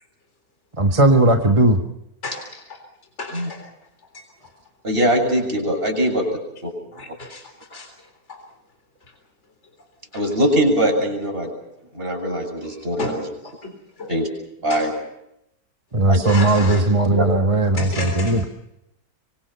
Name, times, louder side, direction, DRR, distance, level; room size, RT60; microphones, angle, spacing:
voice 1, 0.7-1.8 15.9-18.4, right 2 dB, 20° right, 4 dB, 1.6 m, -17 dB
voice 2, 2.2-2.8 3.2-3.7 4.1-4.3 6.9-7.9 8.3-8.4 10.1-10.3 12.6-13.2 13.4-14.1 14.7-14.9 16.2-16.9 17.8-18.5, left 2 dB, 45° left, 5 dB, 4.1 m, -33 dB
voice 3, 4.8-6.2 6.6-6.7 10.1-11.5 11.9-13.2 14.1-14.3 14.6-14.9 16.1-16.2 17.1-17.3, equal, 40° right, 2 dB, 7.6 m, -21 dB
25.5 x 25.0 x 5.8 m, 0.81 s
omnidirectional pair, 1.6 m